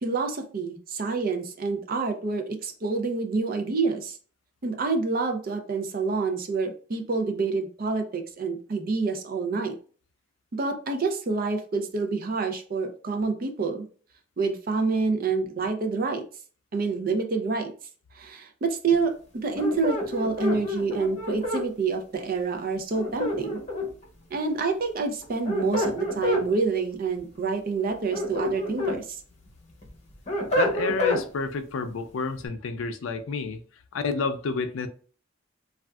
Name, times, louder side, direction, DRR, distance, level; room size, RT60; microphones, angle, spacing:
voice 1, 0.0-4.2 4.6-9.8 10.5-13.9 14.4-16.2 16.7-17.7 18.2-23.6 24.3-29.2, right 4 dB, 45° right, 0.5 m, -27 dB
sound 1, 19.5-21.7 22.9-24.0 25.2-26.5 27.9-29.0 29.5-31.2, left 2 dB, 35° left, 0.8 m, -28 dB
voice 2, 30.5-33.6 33.9-34.9, left 4 dB, 85° left, 0.4 m, -29 dB
3.4 x 2.4 x 2.3 m
head